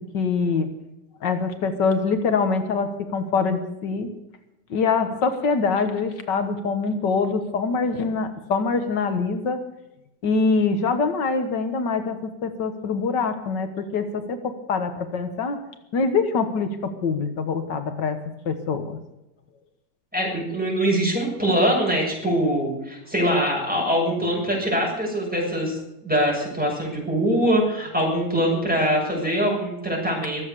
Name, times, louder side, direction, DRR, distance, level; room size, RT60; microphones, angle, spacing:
voice 1, 0.1-0.7 1.2-4.2 4.7-9.6 10.2-14.4 14.7-15.6 15.9-18.2 18.5-19.0, left 4 dB, 85° left, 8 dB, 2.0 m, -24 dB
voice 2, 20.1-25.8 26.0-30.5, equal, 5° right, -3 dB, 7.1 m, -23 dB
23.0 x 8.3 x 6.8 m, 0.90 s
omnidirectional pair, 1.8 m